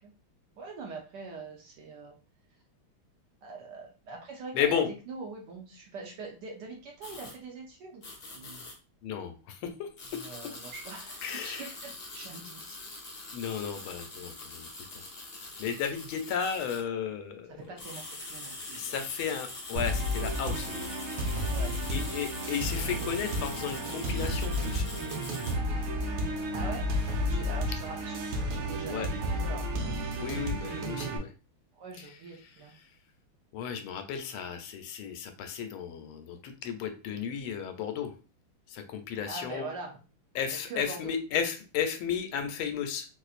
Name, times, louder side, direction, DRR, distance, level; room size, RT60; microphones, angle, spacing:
voice 1, 0.6-2.1 3.4-4.8 5.1-8.0 8.3-8.7 10.2-12.8 17.6-19.0 21.5-22.1 26.5-26.9 27.3-29.1 29.4-29.7 31.7-32.7 39.3-39.9 40.6-41.1, right 4 dB, 65° right, 0 dB, 1.2 m, -43 dB
voice 2, 4.5-4.9 9.0-9.9 11.2-11.7 13.3-14.7 15.6-17.5 18.7-20.9 21.9-24.9 28.9-29.1 30.1-31.3 32.0-32.1 33.5-38.1 38.7-39.7 40.3-43.1, left 8 dB, 85° left, 7 dB, 1.5 m, -34 dB
sound 1, 7.0-7.3 8.0-8.7 10.0-16.8 17.6-25.6, left 2 dB, 65° left, 0.5 m, -43 dB
sound 2, 19.8-31.2, equal, 90° right, 1.6 m, -32 dB
4.1 x 2.5 x 2.4 m, 0.33 s
omnidirectional pair, 2.3 m